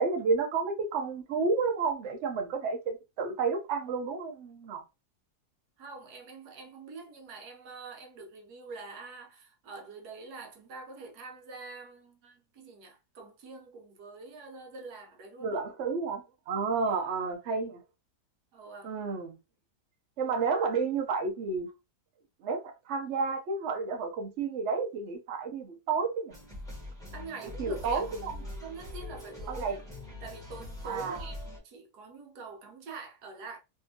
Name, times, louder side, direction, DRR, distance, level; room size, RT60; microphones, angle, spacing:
voice 1, 0.0-4.8 15.4-17.8 18.8-19.4 20.2-21.7 22.4-26.4 27.6-28.3 29.5-29.8 30.8-31.2, right 4 dB, 55° right, 0.9 m, -31 dB
voice 2, 5.8-15.6 16.9-17.0 18.5-18.9 27.1-28.0 28.6-29.8 30.2-33.6, right 4 dB, 75° right, 1.3 m, -45 dB
sound 1, 26.3-31.6, left 1 dB, 5° left, 0.7 m, -42 dB
3.4 x 2.7 x 2.7 m
omnidirectional pair, 1.7 m